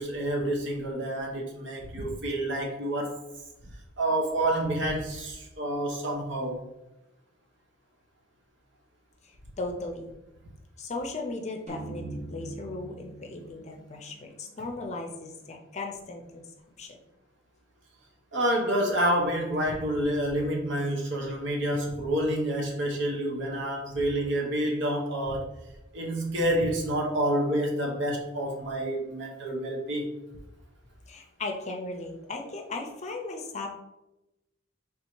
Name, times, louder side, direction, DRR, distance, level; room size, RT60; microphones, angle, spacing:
voice 1, 0.0-3.2 4.0-6.6 18.3-25.5 25.9-30.1, right 1 dB, 60° right, 0 dB, 0.9 m, -28 dB
voice 2, 9.6-10.1 10.8-12.0 12.3-16.4 16.8-17.0 31.1-33.7, left 2 dB, 35° left, 3 dB, 0.6 m, -36 dB
sound 1, 11.7-15.2, right 2 dB, 35° right, 1.1 m, -43 dB
3.5 x 2.8 x 4.4 m, 0.94 s
head